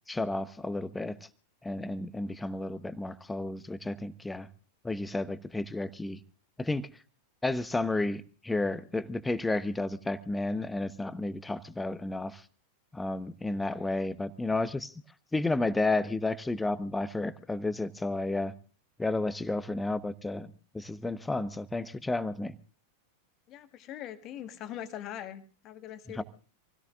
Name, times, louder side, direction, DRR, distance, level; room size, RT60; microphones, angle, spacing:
voice 1, 0.1-1.1 1.6-4.5 4.8-6.2 6.6-6.9 7.4-12.4 12.9-14.9 15.3-18.5 19.0-22.5 26.2-26.3, left 2 dB, 10° left, 15 dB, 0.9 m, -32 dB
voice 2, 23.5-26.2, left 11 dB, 35° left, 9 dB, 1.7 m, -42 dB
27.0 x 17.0 x 2.5 m, 0.38 s
figure-of-eight pair, 90°, 0 cm